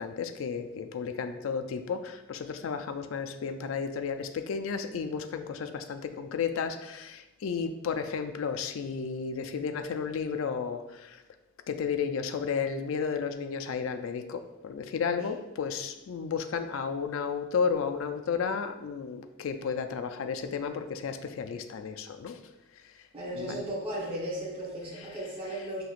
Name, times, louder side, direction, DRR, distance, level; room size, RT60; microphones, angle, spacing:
voice 1, 0.0-11.2 11.7-22.4 23.3-23.7 24.9-25.6, left 6 dB, 65° left, 8 dB, 0.4 m, -33 dB
voice 2, 23.1-25.8, right 1 dB, 25° right, -8 dB, 0.9 m, -35 dB
5.7 x 2.8 x 2.4 m, 0.96 s
head